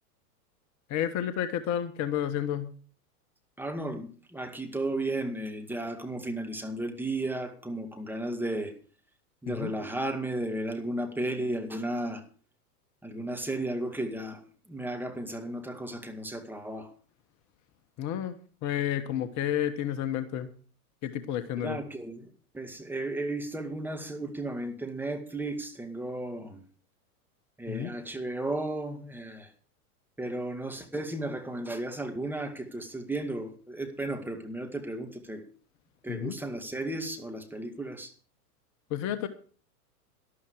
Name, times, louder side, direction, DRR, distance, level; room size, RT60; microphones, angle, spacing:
voice 1, 0.9-2.7 9.5-9.7 18.0-20.5 21.0-21.8 27.7-27.9 36.1-36.4 38.9-39.3, left 10 dB, 40° left, 10 dB, 1.4 m, -31 dB
voice 2, 3.6-8.7 9.4-12.2 13.0-14.4 14.7-16.9 21.6-26.6 27.6-29.5 30.2-35.4 36.0-38.1, right 1 dB, 5° right, 5 dB, 2.1 m, -34 dB
12.5 x 12.0 x 4.8 m, 0.41 s
hypercardioid pair, 110°, 46 cm